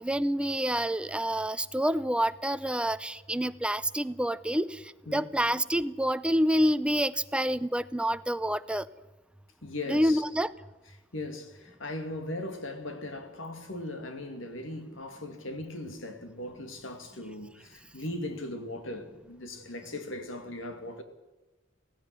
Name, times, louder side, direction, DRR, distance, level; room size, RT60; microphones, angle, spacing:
voice 1, 0.0-4.8 5.1-8.9 9.9-10.5, equal, 5° right, 0.6 m, -27 dB
voice 2, 9.6-10.2 11.1-21.0, left 1 dB, 80° left, 2.4 m, -38 dB
16.5 x 16.5 x 9.7 m
head